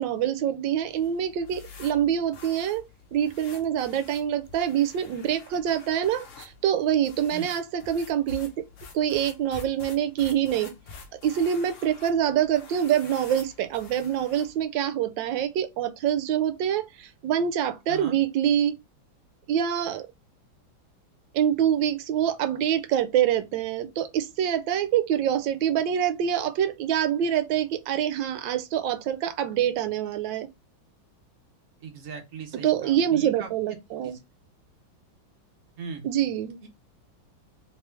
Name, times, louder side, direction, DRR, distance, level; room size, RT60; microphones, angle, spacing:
voice 1, 0.0-2.8 3.1-8.5 8.9-10.7 11.2-18.8 19.5-20.1 21.3-30.5 32.6-34.2 36.0-36.6, right 10 dB, 75° right, 1.2 m, -25 dB
sound 1, 0.9-14.6, left 5 dB, 55° left, 1.0 m, -47 dB
voice 2, 31.8-33.8 34.0-34.2 35.8-36.1 36.6-36.7, right 5 dB, 60° right, 0.8 m, -39 dB
3.3 x 3.1 x 3.3 m
omnidirectional pair, 2.1 m